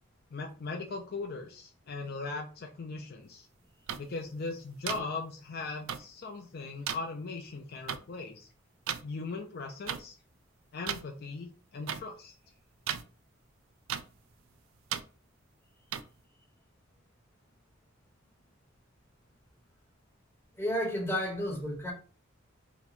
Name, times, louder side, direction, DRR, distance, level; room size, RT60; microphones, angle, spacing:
voice 1, 0.3-3.5 4.0-8.5 9.0-10.2 10.7-12.3, left 3 dB, 50° left, 0.4 m, -39 dB
sound 1, 3.9-4.0 4.9-5.0 5.9-6.0 6.9-7.0 7.9-8.0 8.9-9.0 9.9-10.0 10.9-11.0 11.9-12.0 12.9-13.0 13.9-14.0 14.9-15.0 15.9-16.0, right 9 dB, 80° right, 0.3 m, -33 dB
voice 2, 20.6-21.9, equal, 10° left, 1.1 m, -31 dB
2.9 x 2.2 x 4.1 m
head